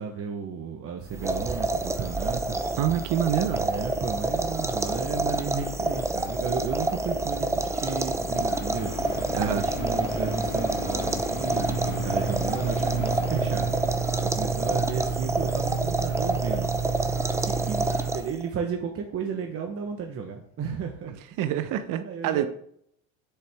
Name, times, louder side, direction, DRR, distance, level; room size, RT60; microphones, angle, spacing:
voice 1, 0.0-2.6 3.6-9.1 9.4-13.7 14.2-16.7 17.4-21.1 22.0-22.5, right 6 dB, 35° right, 1.1 m, -33 dB
sound 1, 1.1-18.5, right 2 dB, 5° right, 0.5 m, -28 dB
voice 2, 2.8-3.7 9.3-9.6 21.4-22.5, right 10 dB, 55° right, 0.8 m, -26 dB
sound 2, 6.8-18.1 18.7-18.8, left 3 dB, 40° left, 2.5 m, -39 dB
sound 3, 11.4-18.1, right 6 dB, 85° right, 3.1 m, -31 dB
7.7 x 6.8 x 3.5 m
supercardioid pair, 110°, 39 cm